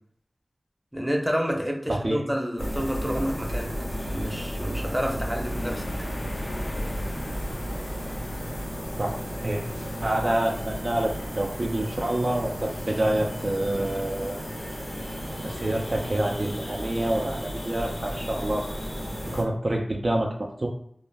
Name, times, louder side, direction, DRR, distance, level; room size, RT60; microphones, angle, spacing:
voice 1, 0.9-3.7 4.1-5.8, equal, 5° right, 0 dB, 0.6 m, -29 dB
voice 2, 1.9-2.2 9.0-9.1 9.4-9.7 10.0-14.4 15.4-18.6 19.3-20.7, right 1 dB, 45° right, 1 dB, 0.3 m, -27 dB
sound 1, 2.6-19.4, equal, 85° left, 1.0 m, -33 dB
sound 2, 5.4-10.5, left 1 dB, 70° left, 0.3 m, -39 dB
2.4 x 2.1 x 3.2 m, 0.67 s
wide cardioid pair, 55°, 0 cm